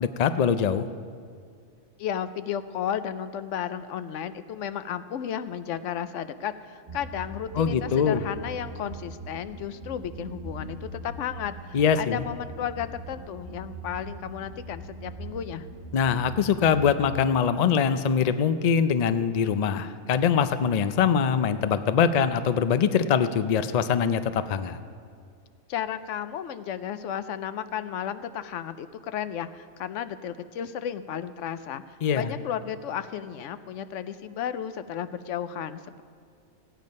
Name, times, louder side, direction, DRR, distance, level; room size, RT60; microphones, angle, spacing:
voice 1, 0.0-0.9 7.6-8.2 11.7-12.2 15.9-24.8 32.0-32.3, left 7 dB, 85° left, 11 dB, 0.3 m, -23 dB
voice 2, 2.0-15.7 25.7-36.0, left 9 dB, 70° left, 12 dB, 0.9 m, -33 dB
sound 1, 6.9-16.9, right 2 dB, 45° right, 1.2 m, -41 dB
15.5 x 9.1 x 5.3 m, 2.2 s
omnidirectional pair, 1.4 m